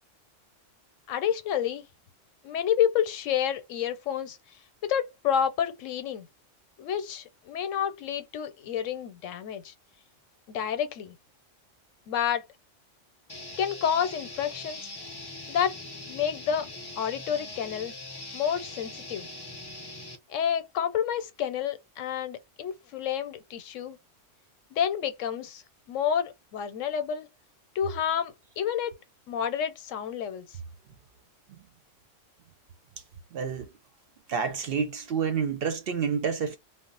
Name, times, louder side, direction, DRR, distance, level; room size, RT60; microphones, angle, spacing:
voice 1, 1.1-1.8 2.4-4.4 4.8-6.3 6.8-9.7 10.5-11.2 12.1-12.4 13.6-14.9 15.5-15.8 16.1-16.7 17.0-17.9 18.3-19.3 20.3-24.0 24.7-25.6 25.9-27.3 27.7-28.9 29.3-30.6, left 8 dB, 85° left, 1.0 m, -29 dB
sound 1, 13.3-20.2, left 2 dB, 40° left, 0.3 m, -41 dB
voice 2, 33.3-33.8 34.3-36.6, right 6 dB, 60° right, 0.7 m, -29 dB
2.4 x 2.1 x 3.7 m
omnidirectional pair, 1.3 m